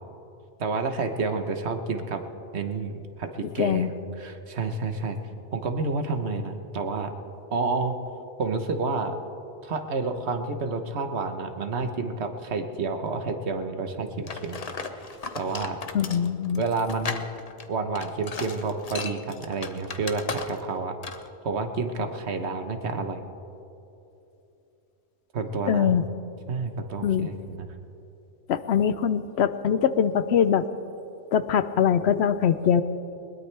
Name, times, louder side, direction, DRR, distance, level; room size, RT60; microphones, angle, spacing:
voice 1, 0.6-2.2 2.5-5.2 5.5-7.1 7.5-8.0 8.4-9.2 9.6-14.6 15.3-15.8 16.6-17.3 17.7-21.0 21.4-23.2 25.3-25.9 26.5-27.7, right 4 dB, 65° right, 7 dB, 1.3 m, -29 dB
voice 2, 3.6-3.9 15.9-16.6 25.7-26.0 27.0-27.3 28.5-30.7 31.3-32.8, left 8 dB, 70° left, 13 dB, 0.8 m, -22 dB
sound 1, 14.3-20.8 21.0-21.3, left 4 dB, 35° left, 0.8 m, -36 dB
21.0 x 20.5 x 3.3 m, 2.9 s
omnidirectional pair, 1.2 m